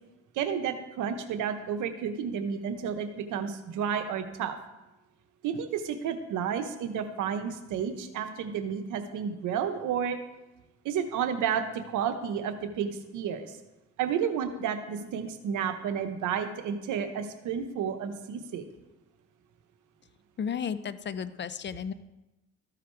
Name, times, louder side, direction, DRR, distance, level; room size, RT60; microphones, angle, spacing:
voice 1, 0.3-4.6 5.4-10.2 10.8-13.5 14.0-18.7, right 7 dB, 85° right, 8 dB, 0.9 m, -31 dB
voice 2, 20.4-21.9, left 7 dB, 40° left, 14 dB, 0.5 m, -33 dB
13.5 x 5.0 x 4.5 m, 1.0 s
cardioid pair, 90°, 30 cm